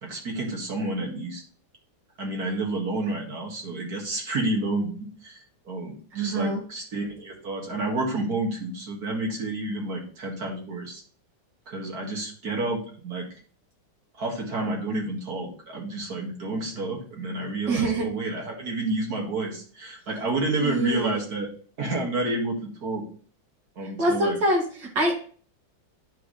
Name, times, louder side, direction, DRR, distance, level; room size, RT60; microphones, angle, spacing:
voice 1, 0.0-1.4 2.2-11.0 11.7-13.3 14.2-21.5 21.8-23.0 23.8-24.4, right 2 dB, 55° right, 0 dB, 2.4 m, -30 dB
voice 2, 6.1-6.6 17.7-18.1 20.6-21.2 24.0-25.1, right 1 dB, 70° right, -1 dB, 3.0 m, -25 dB
10.0 x 4.8 x 3.2 m, 0.43 s
omnidirectional pair, 2.1 m